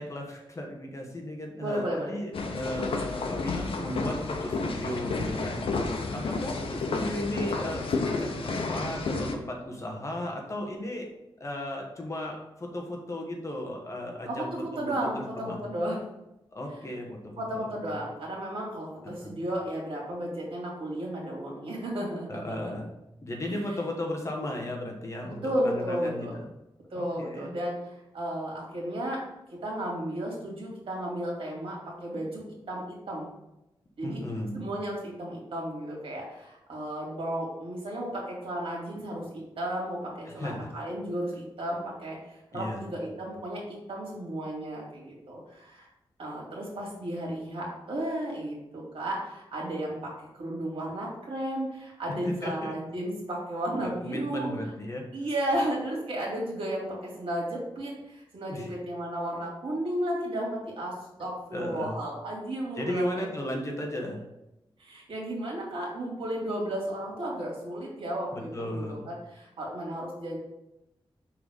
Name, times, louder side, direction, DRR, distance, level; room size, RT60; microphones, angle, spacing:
voice 1, 0.0-11.1 11.4-14.5 14.8-15.6 16.5-17.7 19.0-19.4 22.3-22.9 23.2-26.5 27.0-27.5 34.0-34.7 40.4-40.7 42.5-42.9 52.4-52.7 53.8-55.0 58.5-58.7 61.5-61.9 62.8-64.2 68.3-69.1, left 1 dB, 35° left, 1 dB, 1.2 m, -35 dB
voice 2, 1.6-2.1 6.0-6.2 14.3-16.0 17.4-22.7 23.5-23.6 25.4-26.4 26.9-29.2 29.6-32.4 32.7-33.3 34.0-34.2 34.5-45.9 46.2-50.1 50.4-54.5 55.1-60.9 61.2-63.2 64.8-70.4, right 1 dB, 85° right, -3 dB, 2.6 m, -33 dB
sound 1, 2.3-9.3, left 3 dB, 80° left, 0.9 m, -31 dB
5.8 x 4.1 x 5.2 m, 0.90 s
wide cardioid pair, 150°, 9 cm